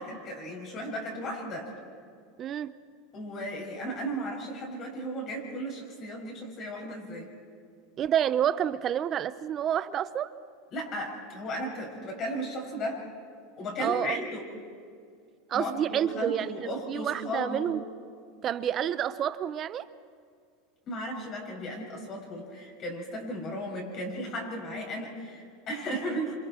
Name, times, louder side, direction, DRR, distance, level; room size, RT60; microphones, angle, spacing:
voice 1, 0.0-1.7 3.1-7.3 10.7-13.0 13.6-14.5 15.5-17.7 20.9-26.3, equal, 40° left, 0 dB, 6.2 m, -35 dB
voice 2, 2.4-2.7 8.0-10.3 13.8-14.2 15.5-16.5 16.9-17.8 18.4-19.9, right 10 dB, 35° right, 14 dB, 0.8 m, -29 dB
27.0 x 26.5 x 4.5 m, 2.2 s
supercardioid pair, 130°, 0 cm